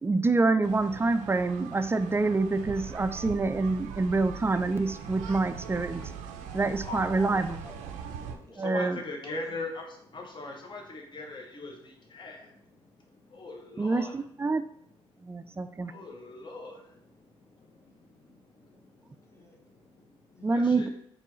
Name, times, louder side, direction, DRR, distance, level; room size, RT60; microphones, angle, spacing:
voice 1, 0.0-6.1 6.5-7.6 8.6-9.0 13.8-14.6 15.2-15.9 20.4-20.9, right 3 dB, 20° right, 11 dB, 0.3 m, -26 dB
sound 1, 0.6-8.4, right 7 dB, 85° right, 0.4 m, -41 dB
voice 2, 6.8-7.4 8.7-9.8 10.1-10.8 11.1-11.7 12.2-12.3 13.4-13.5 13.8-14.1 15.9-16.7 20.5-20.9, left 2 dB, 40° left, 1 dB, 1.0 m, -38 dB
voice 3, 7.6-7.9 8.3-8.9 9.2-9.4 19.0-19.6 20.3-20.6, left 1 dB, 20° left, 0 dB, 1.3 m, -51 dB
4.4 x 3.1 x 3.1 m, 0.70 s
supercardioid pair, 55°, 12 cm